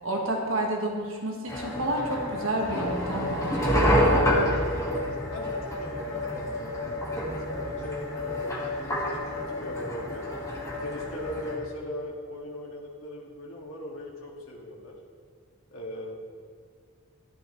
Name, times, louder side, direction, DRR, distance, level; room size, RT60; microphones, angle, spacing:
voice 1, 0.0-3.7, right 1 dB, 65° right, 0 dB, 1.5 m, -30 dB
sound 1, 1.5-11.5, equal, 15° left, 1.4 m, -28 dB
voice 2, 5.0-7.0 7.4-10.3 10.8-14.9 15.7-16.2, left 1 dB, 70° left, -2 dB, 1.8 m, -39 dB
12.5 x 10.5 x 3.1 m, 2.1 s
head